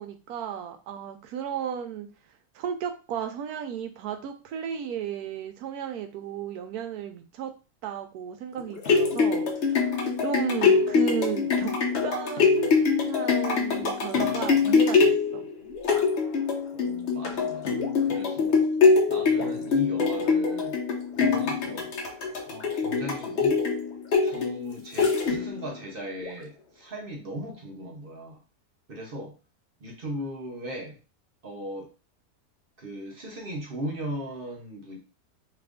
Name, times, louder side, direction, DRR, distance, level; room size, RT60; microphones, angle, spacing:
voice 1, 0.0-2.1 2.5-7.5 7.8-11.7 12.0-15.5, right 8 dB, 80° right, 6 dB, 1.1 m, -34 dB
sound 1, 8.6-25.7 26.2-26.3, left 5 dB, 55° left, 0.9 m, -24 dB
voice 2, 16.7-18.7 19.1-20.8 21.2-21.9 22.5-23.7 24.2-28.4 28.9-29.4 29.8-31.0 31.4-31.9 32.8-35.0, equal, 50° right, 0 dB, 0.8 m, -38 dB
2.9 x 2.5 x 3.4 m, 0.31 s
omnidirectional pair, 1.6 m